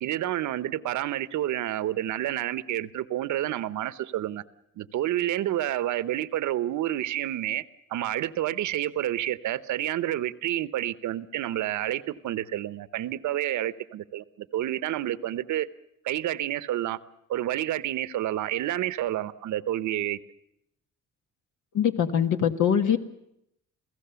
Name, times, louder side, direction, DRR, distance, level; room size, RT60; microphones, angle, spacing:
voice 1, 0.0-4.4 4.8-7.6 7.9-15.7 16.0-17.0 17.3-20.2, right 13 dB, 75° right, 0.9 m, -29 dB
voice 2, 21.7-23.0, left 8 dB, 75° left, 1.6 m, -23 dB
28.0 x 16.0 x 6.9 m
cardioid pair, 90°, 30 cm